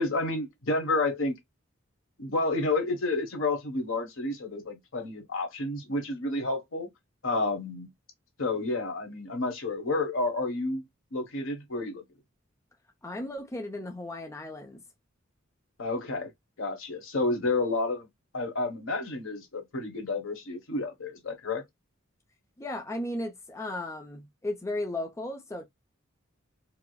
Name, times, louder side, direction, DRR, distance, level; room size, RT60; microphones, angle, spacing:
voice 1, 0.0-1.4 2.2-6.9 7.2-7.9 8.4-10.8 11.1-12.0 15.8-16.3 16.6-18.1 18.3-21.6, left 2 dB, 70° left, 1.2 m, -30 dB
voice 2, 13.0-14.8 22.6-25.7, left 1 dB, 15° left, 0.5 m, -35 dB
4.7 x 2.0 x 2.3 m
head